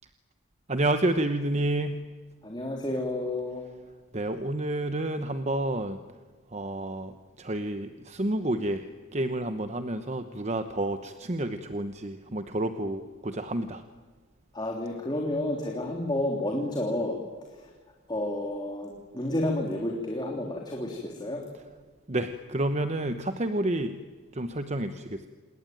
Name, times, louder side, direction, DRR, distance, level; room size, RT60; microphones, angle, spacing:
voice 1, 0.7-2.1 4.1-6.0 6.5-13.8 22.1-24.0 24.3-25.3, right 1 dB, 35° right, 9 dB, 1.0 m, -30 dB
voice 2, 2.4-3.6 14.5-17.2 18.1-21.4, left 1 dB, 20° left, 0 dB, 3.1 m, -30 dB
27.5 x 21.0 x 9.2 m, 1.4 s
head